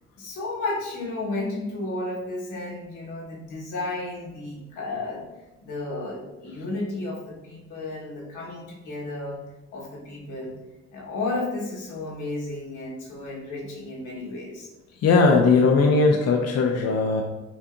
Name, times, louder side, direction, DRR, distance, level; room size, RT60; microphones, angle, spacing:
voice 1, 0.2-5.2 5.6-9.4 9.7-10.6 10.9-14.7, left 2 dB, 85° left, -4 dB, 1.3 m, -33 dB
voice 2, 15.0-17.2, left 4 dB, 55° left, 1 dB, 0.5 m, -19 dB
5.1 x 2.6 x 2.5 m, 1.0 s
cardioid pair, 90°, 30 cm